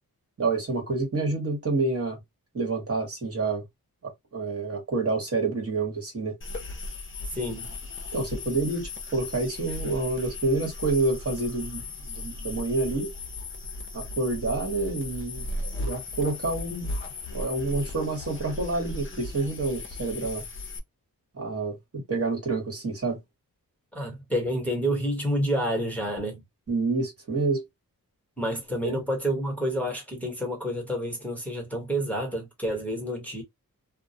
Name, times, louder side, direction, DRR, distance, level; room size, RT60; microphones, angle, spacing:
voice 1, 0.4-2.2 2.5-3.7 4.0-6.4 8.1-13.1 13.9-15.4 15.8-16.9 17.3-20.5 21.3-23.2 26.7-27.6 28.8-29.0, right 3 dB, 40° right, 1.2 m, -28 dB
sound 1, 6.4-20.8, left 2 dB, 35° left, 0.6 m, -37 dB
voice 2, 7.3-7.7 23.9-26.4 28.4-33.4, equal, 5° left, 1.1 m, -29 dB
2.3 x 2.1 x 2.7 m
wide cardioid pair, 85°, 36 cm